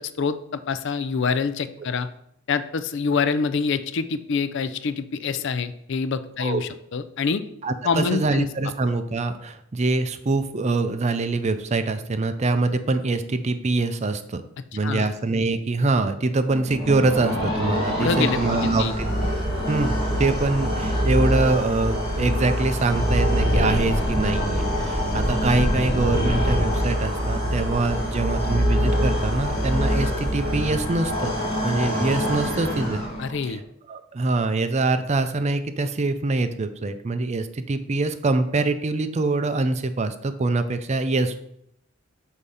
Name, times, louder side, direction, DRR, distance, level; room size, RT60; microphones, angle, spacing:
voice 1, 0.0-2.1 2.5-7.4 7.8-8.5 14.8-15.1 18.0-19.0 33.2-33.6, left 5 dB, 60° left, 12 dB, 0.4 m, -26 dB
voice 2, 7.6-14.4 14.7-19.2 19.7-31.4 31.6-33.0 33.5-33.6 33.9-41.4, right 3 dB, 35° right, 9 dB, 0.4 m, -24 dB
sound 1, 16.5-33.5, equal, 35° left, 2.6 m, -24 dB
8.2 x 2.8 x 5.5 m, 0.74 s
head